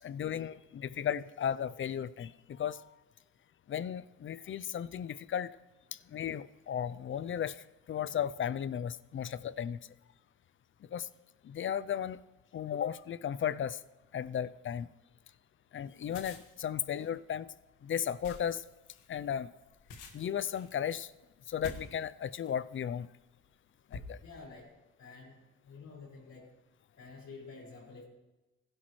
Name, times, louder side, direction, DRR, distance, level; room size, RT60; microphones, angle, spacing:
voice 1, 0.0-2.9 3.7-5.5 5.9-9.8 10.9-11.1 11.4-12.2 12.5-13.8 14.1-14.9 15.7-17.5 17.8-18.6 19.1-19.5 20.1-21.1 21.5-23.1 23.9-24.2, left 9 dB, 40° left, 17 dB, 0.5 m, -35 dB
sound 1, 16.1-22.7 23.3-23.5 23.9-24.6, left 4 dB, 90° left, 1.7 m, -49 dB
voice 2, 24.2-24.7 25.0-25.4 25.6-26.5 27.0-28.0, left 4 dB, 70° left, -5 dB, 5.0 m, -49 dB
16.5 x 11.5 x 3.2 m, 1.0 s
cardioid pair, 90°, 30 cm